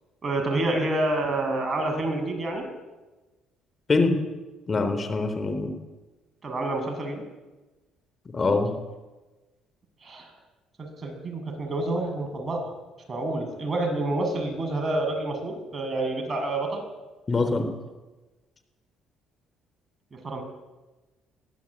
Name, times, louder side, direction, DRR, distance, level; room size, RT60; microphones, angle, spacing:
voice 1, 0.2-2.7 6.4-7.2 10.0-10.3 10.8-12.7 13.1-16.8 20.1-20.4, right 2 dB, 30° right, 3 dB, 7.3 m, -28 dB
voice 2, 4.7-5.7 8.3-8.7 17.3-17.7, left 3 dB, 35° left, 8 dB, 3.5 m, -24 dB
22.5 x 17.0 x 8.8 m, 1.2 s
supercardioid pair, 75°, 0 cm